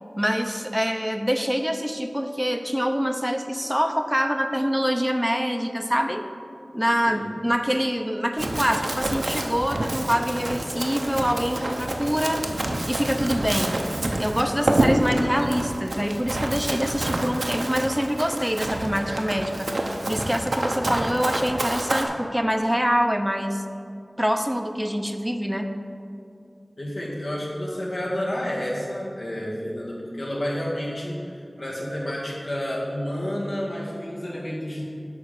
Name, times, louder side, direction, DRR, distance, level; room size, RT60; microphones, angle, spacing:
voice 1, 0.2-6.2 6.7-12.4 12.9-13.8 14.2-19.7 20.1-23.6 24.2-25.8, equal, 5° right, 6 dB, 0.6 m, -25 dB
Run, 8.4-22.0, right 1 dB, 70° right, 0.7 m, -28 dB
voice 2, 26.8-34.9, equal, 75° left, -5 dB, 1.8 m, -30 dB
9.3 x 3.7 x 6.6 m, 2.4 s
wide cardioid pair, 45°, 0 cm